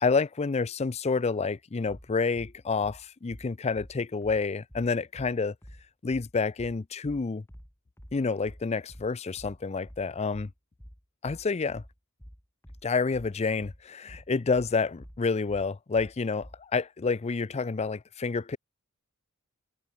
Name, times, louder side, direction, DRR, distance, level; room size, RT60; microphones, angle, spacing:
voice 1, 0.0-5.5 6.0-7.4 8.1-10.5 11.2-11.8 12.8-18.6, left 4 dB, 30° left, 0.4 m, -29 dB
sound 1, 1.9-16.7, equal, 10° left, 5.7 m, -49 dB
head